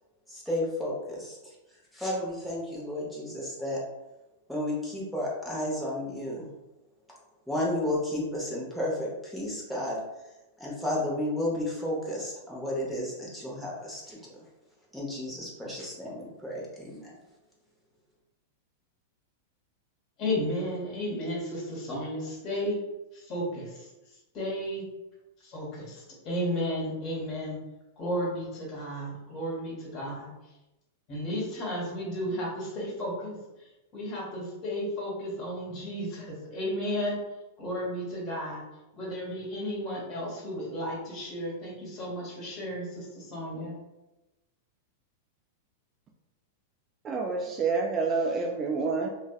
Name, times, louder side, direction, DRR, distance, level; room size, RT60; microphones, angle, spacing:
voice 1, 0.3-1.5 1.9-3.8 4.5-6.5 7.5-10.0 10.6-14.4 14.9-17.2, left 1 dB, ahead, -5 dB, 0.8 m, -32 dB
voice 2, 20.2-22.8 23.1-23.9 24.3-24.8 25.4-27.6 28.0-30.3 31.1-37.2 37.6-38.6 38.9-43.7, equal, 40° left, -4 dB, 1.1 m, -33 dB
voice 3, 47.0-49.1, right 4 dB, 30° right, 1 dB, 0.3 m, -28 dB
2.5 x 2.1 x 2.3 m, 0.99 s
hypercardioid pair, 115°, 0 cm